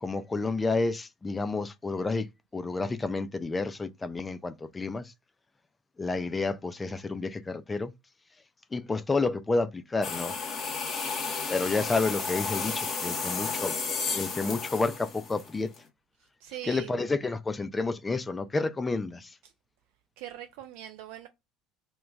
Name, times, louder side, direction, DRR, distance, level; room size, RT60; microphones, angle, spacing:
voice 1, 0.0-2.3 2.5-5.1 6.0-7.9 8.7-10.3 11.5-13.7 14.1-15.7 16.6-19.3, left 3 dB, 15° left, 0.4 m, -30 dB
sound 1, 10.0-15.8, left 5 dB, 35° left, 0.8 m, -33 dB
voice 2, 16.4-17.0 20.2-21.3, right 12 dB, 60° right, 0.3 m, -41 dB
2.2 x 2.2 x 3.8 m
figure-of-eight pair, 65°, 0 cm